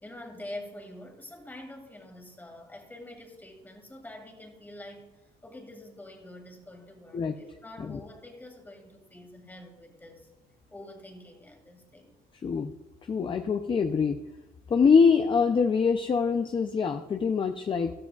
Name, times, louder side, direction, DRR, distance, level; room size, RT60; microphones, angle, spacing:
voice 1, 0.0-10.3 10.7-12.2, left 1 dB, 10° left, 2 dB, 2.2 m, -46 dB
voice 2, 12.4-12.7 13.1-14.2 14.7-17.9, left 5 dB, 30° left, 6 dB, 0.6 m, -24 dB
13.0 x 13.0 x 2.4 m, 1.1 s
cardioid pair, 110°, 17 cm